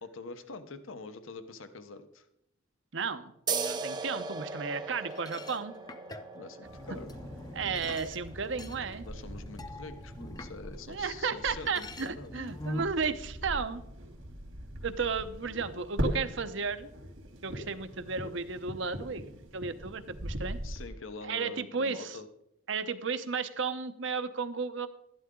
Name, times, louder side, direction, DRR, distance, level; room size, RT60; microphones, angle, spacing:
voice 1, 0.0-2.3 6.3-7.1 9.0-12.5 20.6-22.3, left 3 dB, 75° left, 11 dB, 0.9 m, -45 dB
voice 2, 2.9-5.7 7.5-9.1 10.9-13.8 14.8-16.9 17.4-20.6 21.2-22.2 22.7-24.9, right 5 dB, 65° right, 10 dB, 0.8 m, -34 dB
sound 1, 3.5-10.6, right 4 dB, 20° right, 0.6 m, -39 dB
sound 2, 5.1-11.1 11.4-13.1, left 1 dB, 20° left, 0.6 m, -44 dB
sound 3, 6.6-20.9, equal, 80° right, 2.7 m, -41 dB
12.0 x 11.5 x 3.8 m, 0.80 s
head